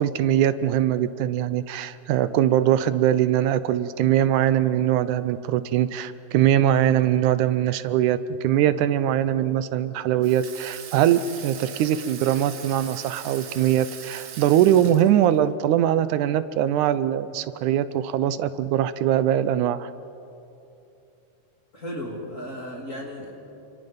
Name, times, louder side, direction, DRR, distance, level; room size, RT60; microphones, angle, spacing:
voice 1, 0.0-19.9, right 11 dB, 80° right, 13 dB, 2.1 m, -22 dB
Water tap faucet / Sink (filling or washing), 10.2-15.5, right 7 dB, 60° right, 2.4 m, -40 dB
voice 2, 21.7-23.3, equal, 25° left, -1 dB, 3.1 m, -35 dB
29.5 x 26.0 x 5.3 m, 2.8 s
omnidirectional pair, 3.5 m